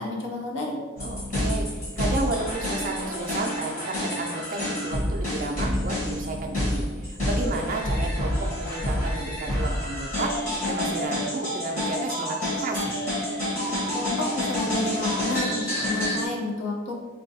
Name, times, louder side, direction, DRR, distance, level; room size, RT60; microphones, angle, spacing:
voice 1, 0.0-0.8 13.9-16.9, left 2 dB, 65° left, -1 dB, 0.6 m, -30 dB
sound 1, 1.0-16.2, left 1 dB, 40° left, 1.2 m, -28 dB
voice 2, 1.0-12.9, right 3 dB, 40° right, 2 dB, 0.4 m, -32 dB
4.3 x 2.2 x 2.7 m, 1.4 s
head